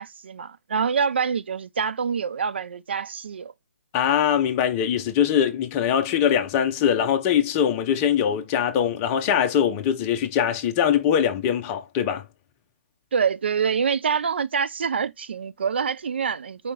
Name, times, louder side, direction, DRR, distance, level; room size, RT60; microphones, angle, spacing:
voice 1, 0.0-3.5 13.1-16.7, right 6 dB, 55° right, 0.4 m, -26 dB
voice 2, 3.9-12.2, left 9 dB, 20° left, 0.7 m, -22 dB
4.8 x 2.9 x 3.5 m
figure-of-eight pair, 135°, 7 cm